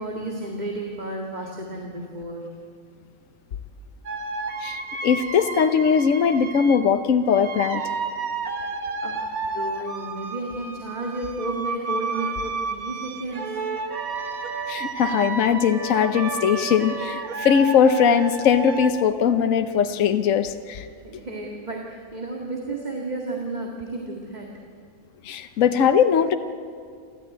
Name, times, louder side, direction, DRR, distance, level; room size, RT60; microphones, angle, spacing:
voice 1, 0.0-2.6 9.0-13.6 20.3-20.4 20.8-24.5, right 2 dB, 30° right, -1 dB, 2.2 m, -32 dB
sound 1, 4.1-6.9 7.3-18.9, right 4 dB, 70° right, 1.9 m, -31 dB
voice 2, 4.6-7.8 14.7-20.9 25.2-26.4, left 7 dB, 65° left, 8 dB, 1.2 m, -20 dB
29.0 x 13.5 x 9.4 m, 2.3 s
omnidirectional pair, 1.5 m